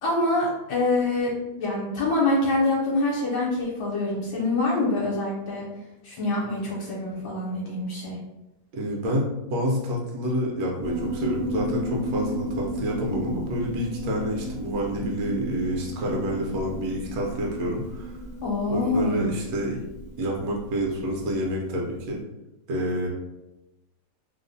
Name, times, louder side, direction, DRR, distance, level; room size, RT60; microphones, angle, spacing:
voice 1, 0.0-5.7 6.0-8.2 18.4-19.3, left 2 dB, 75° left, -5 dB, 1.2 m, -25 dB
voice 2, 8.7-18.1 18.7-19.8 20.2-22.2 22.7-23.1, equal, 70° right, -2 dB, 1.0 m, -28 dB
Piano, 10.8-21.5, equal, 60° left, 0.7 m, -35 dB
3.0 x 2.0 x 2.5 m, 0.94 s
omnidirectional pair, 1.9 m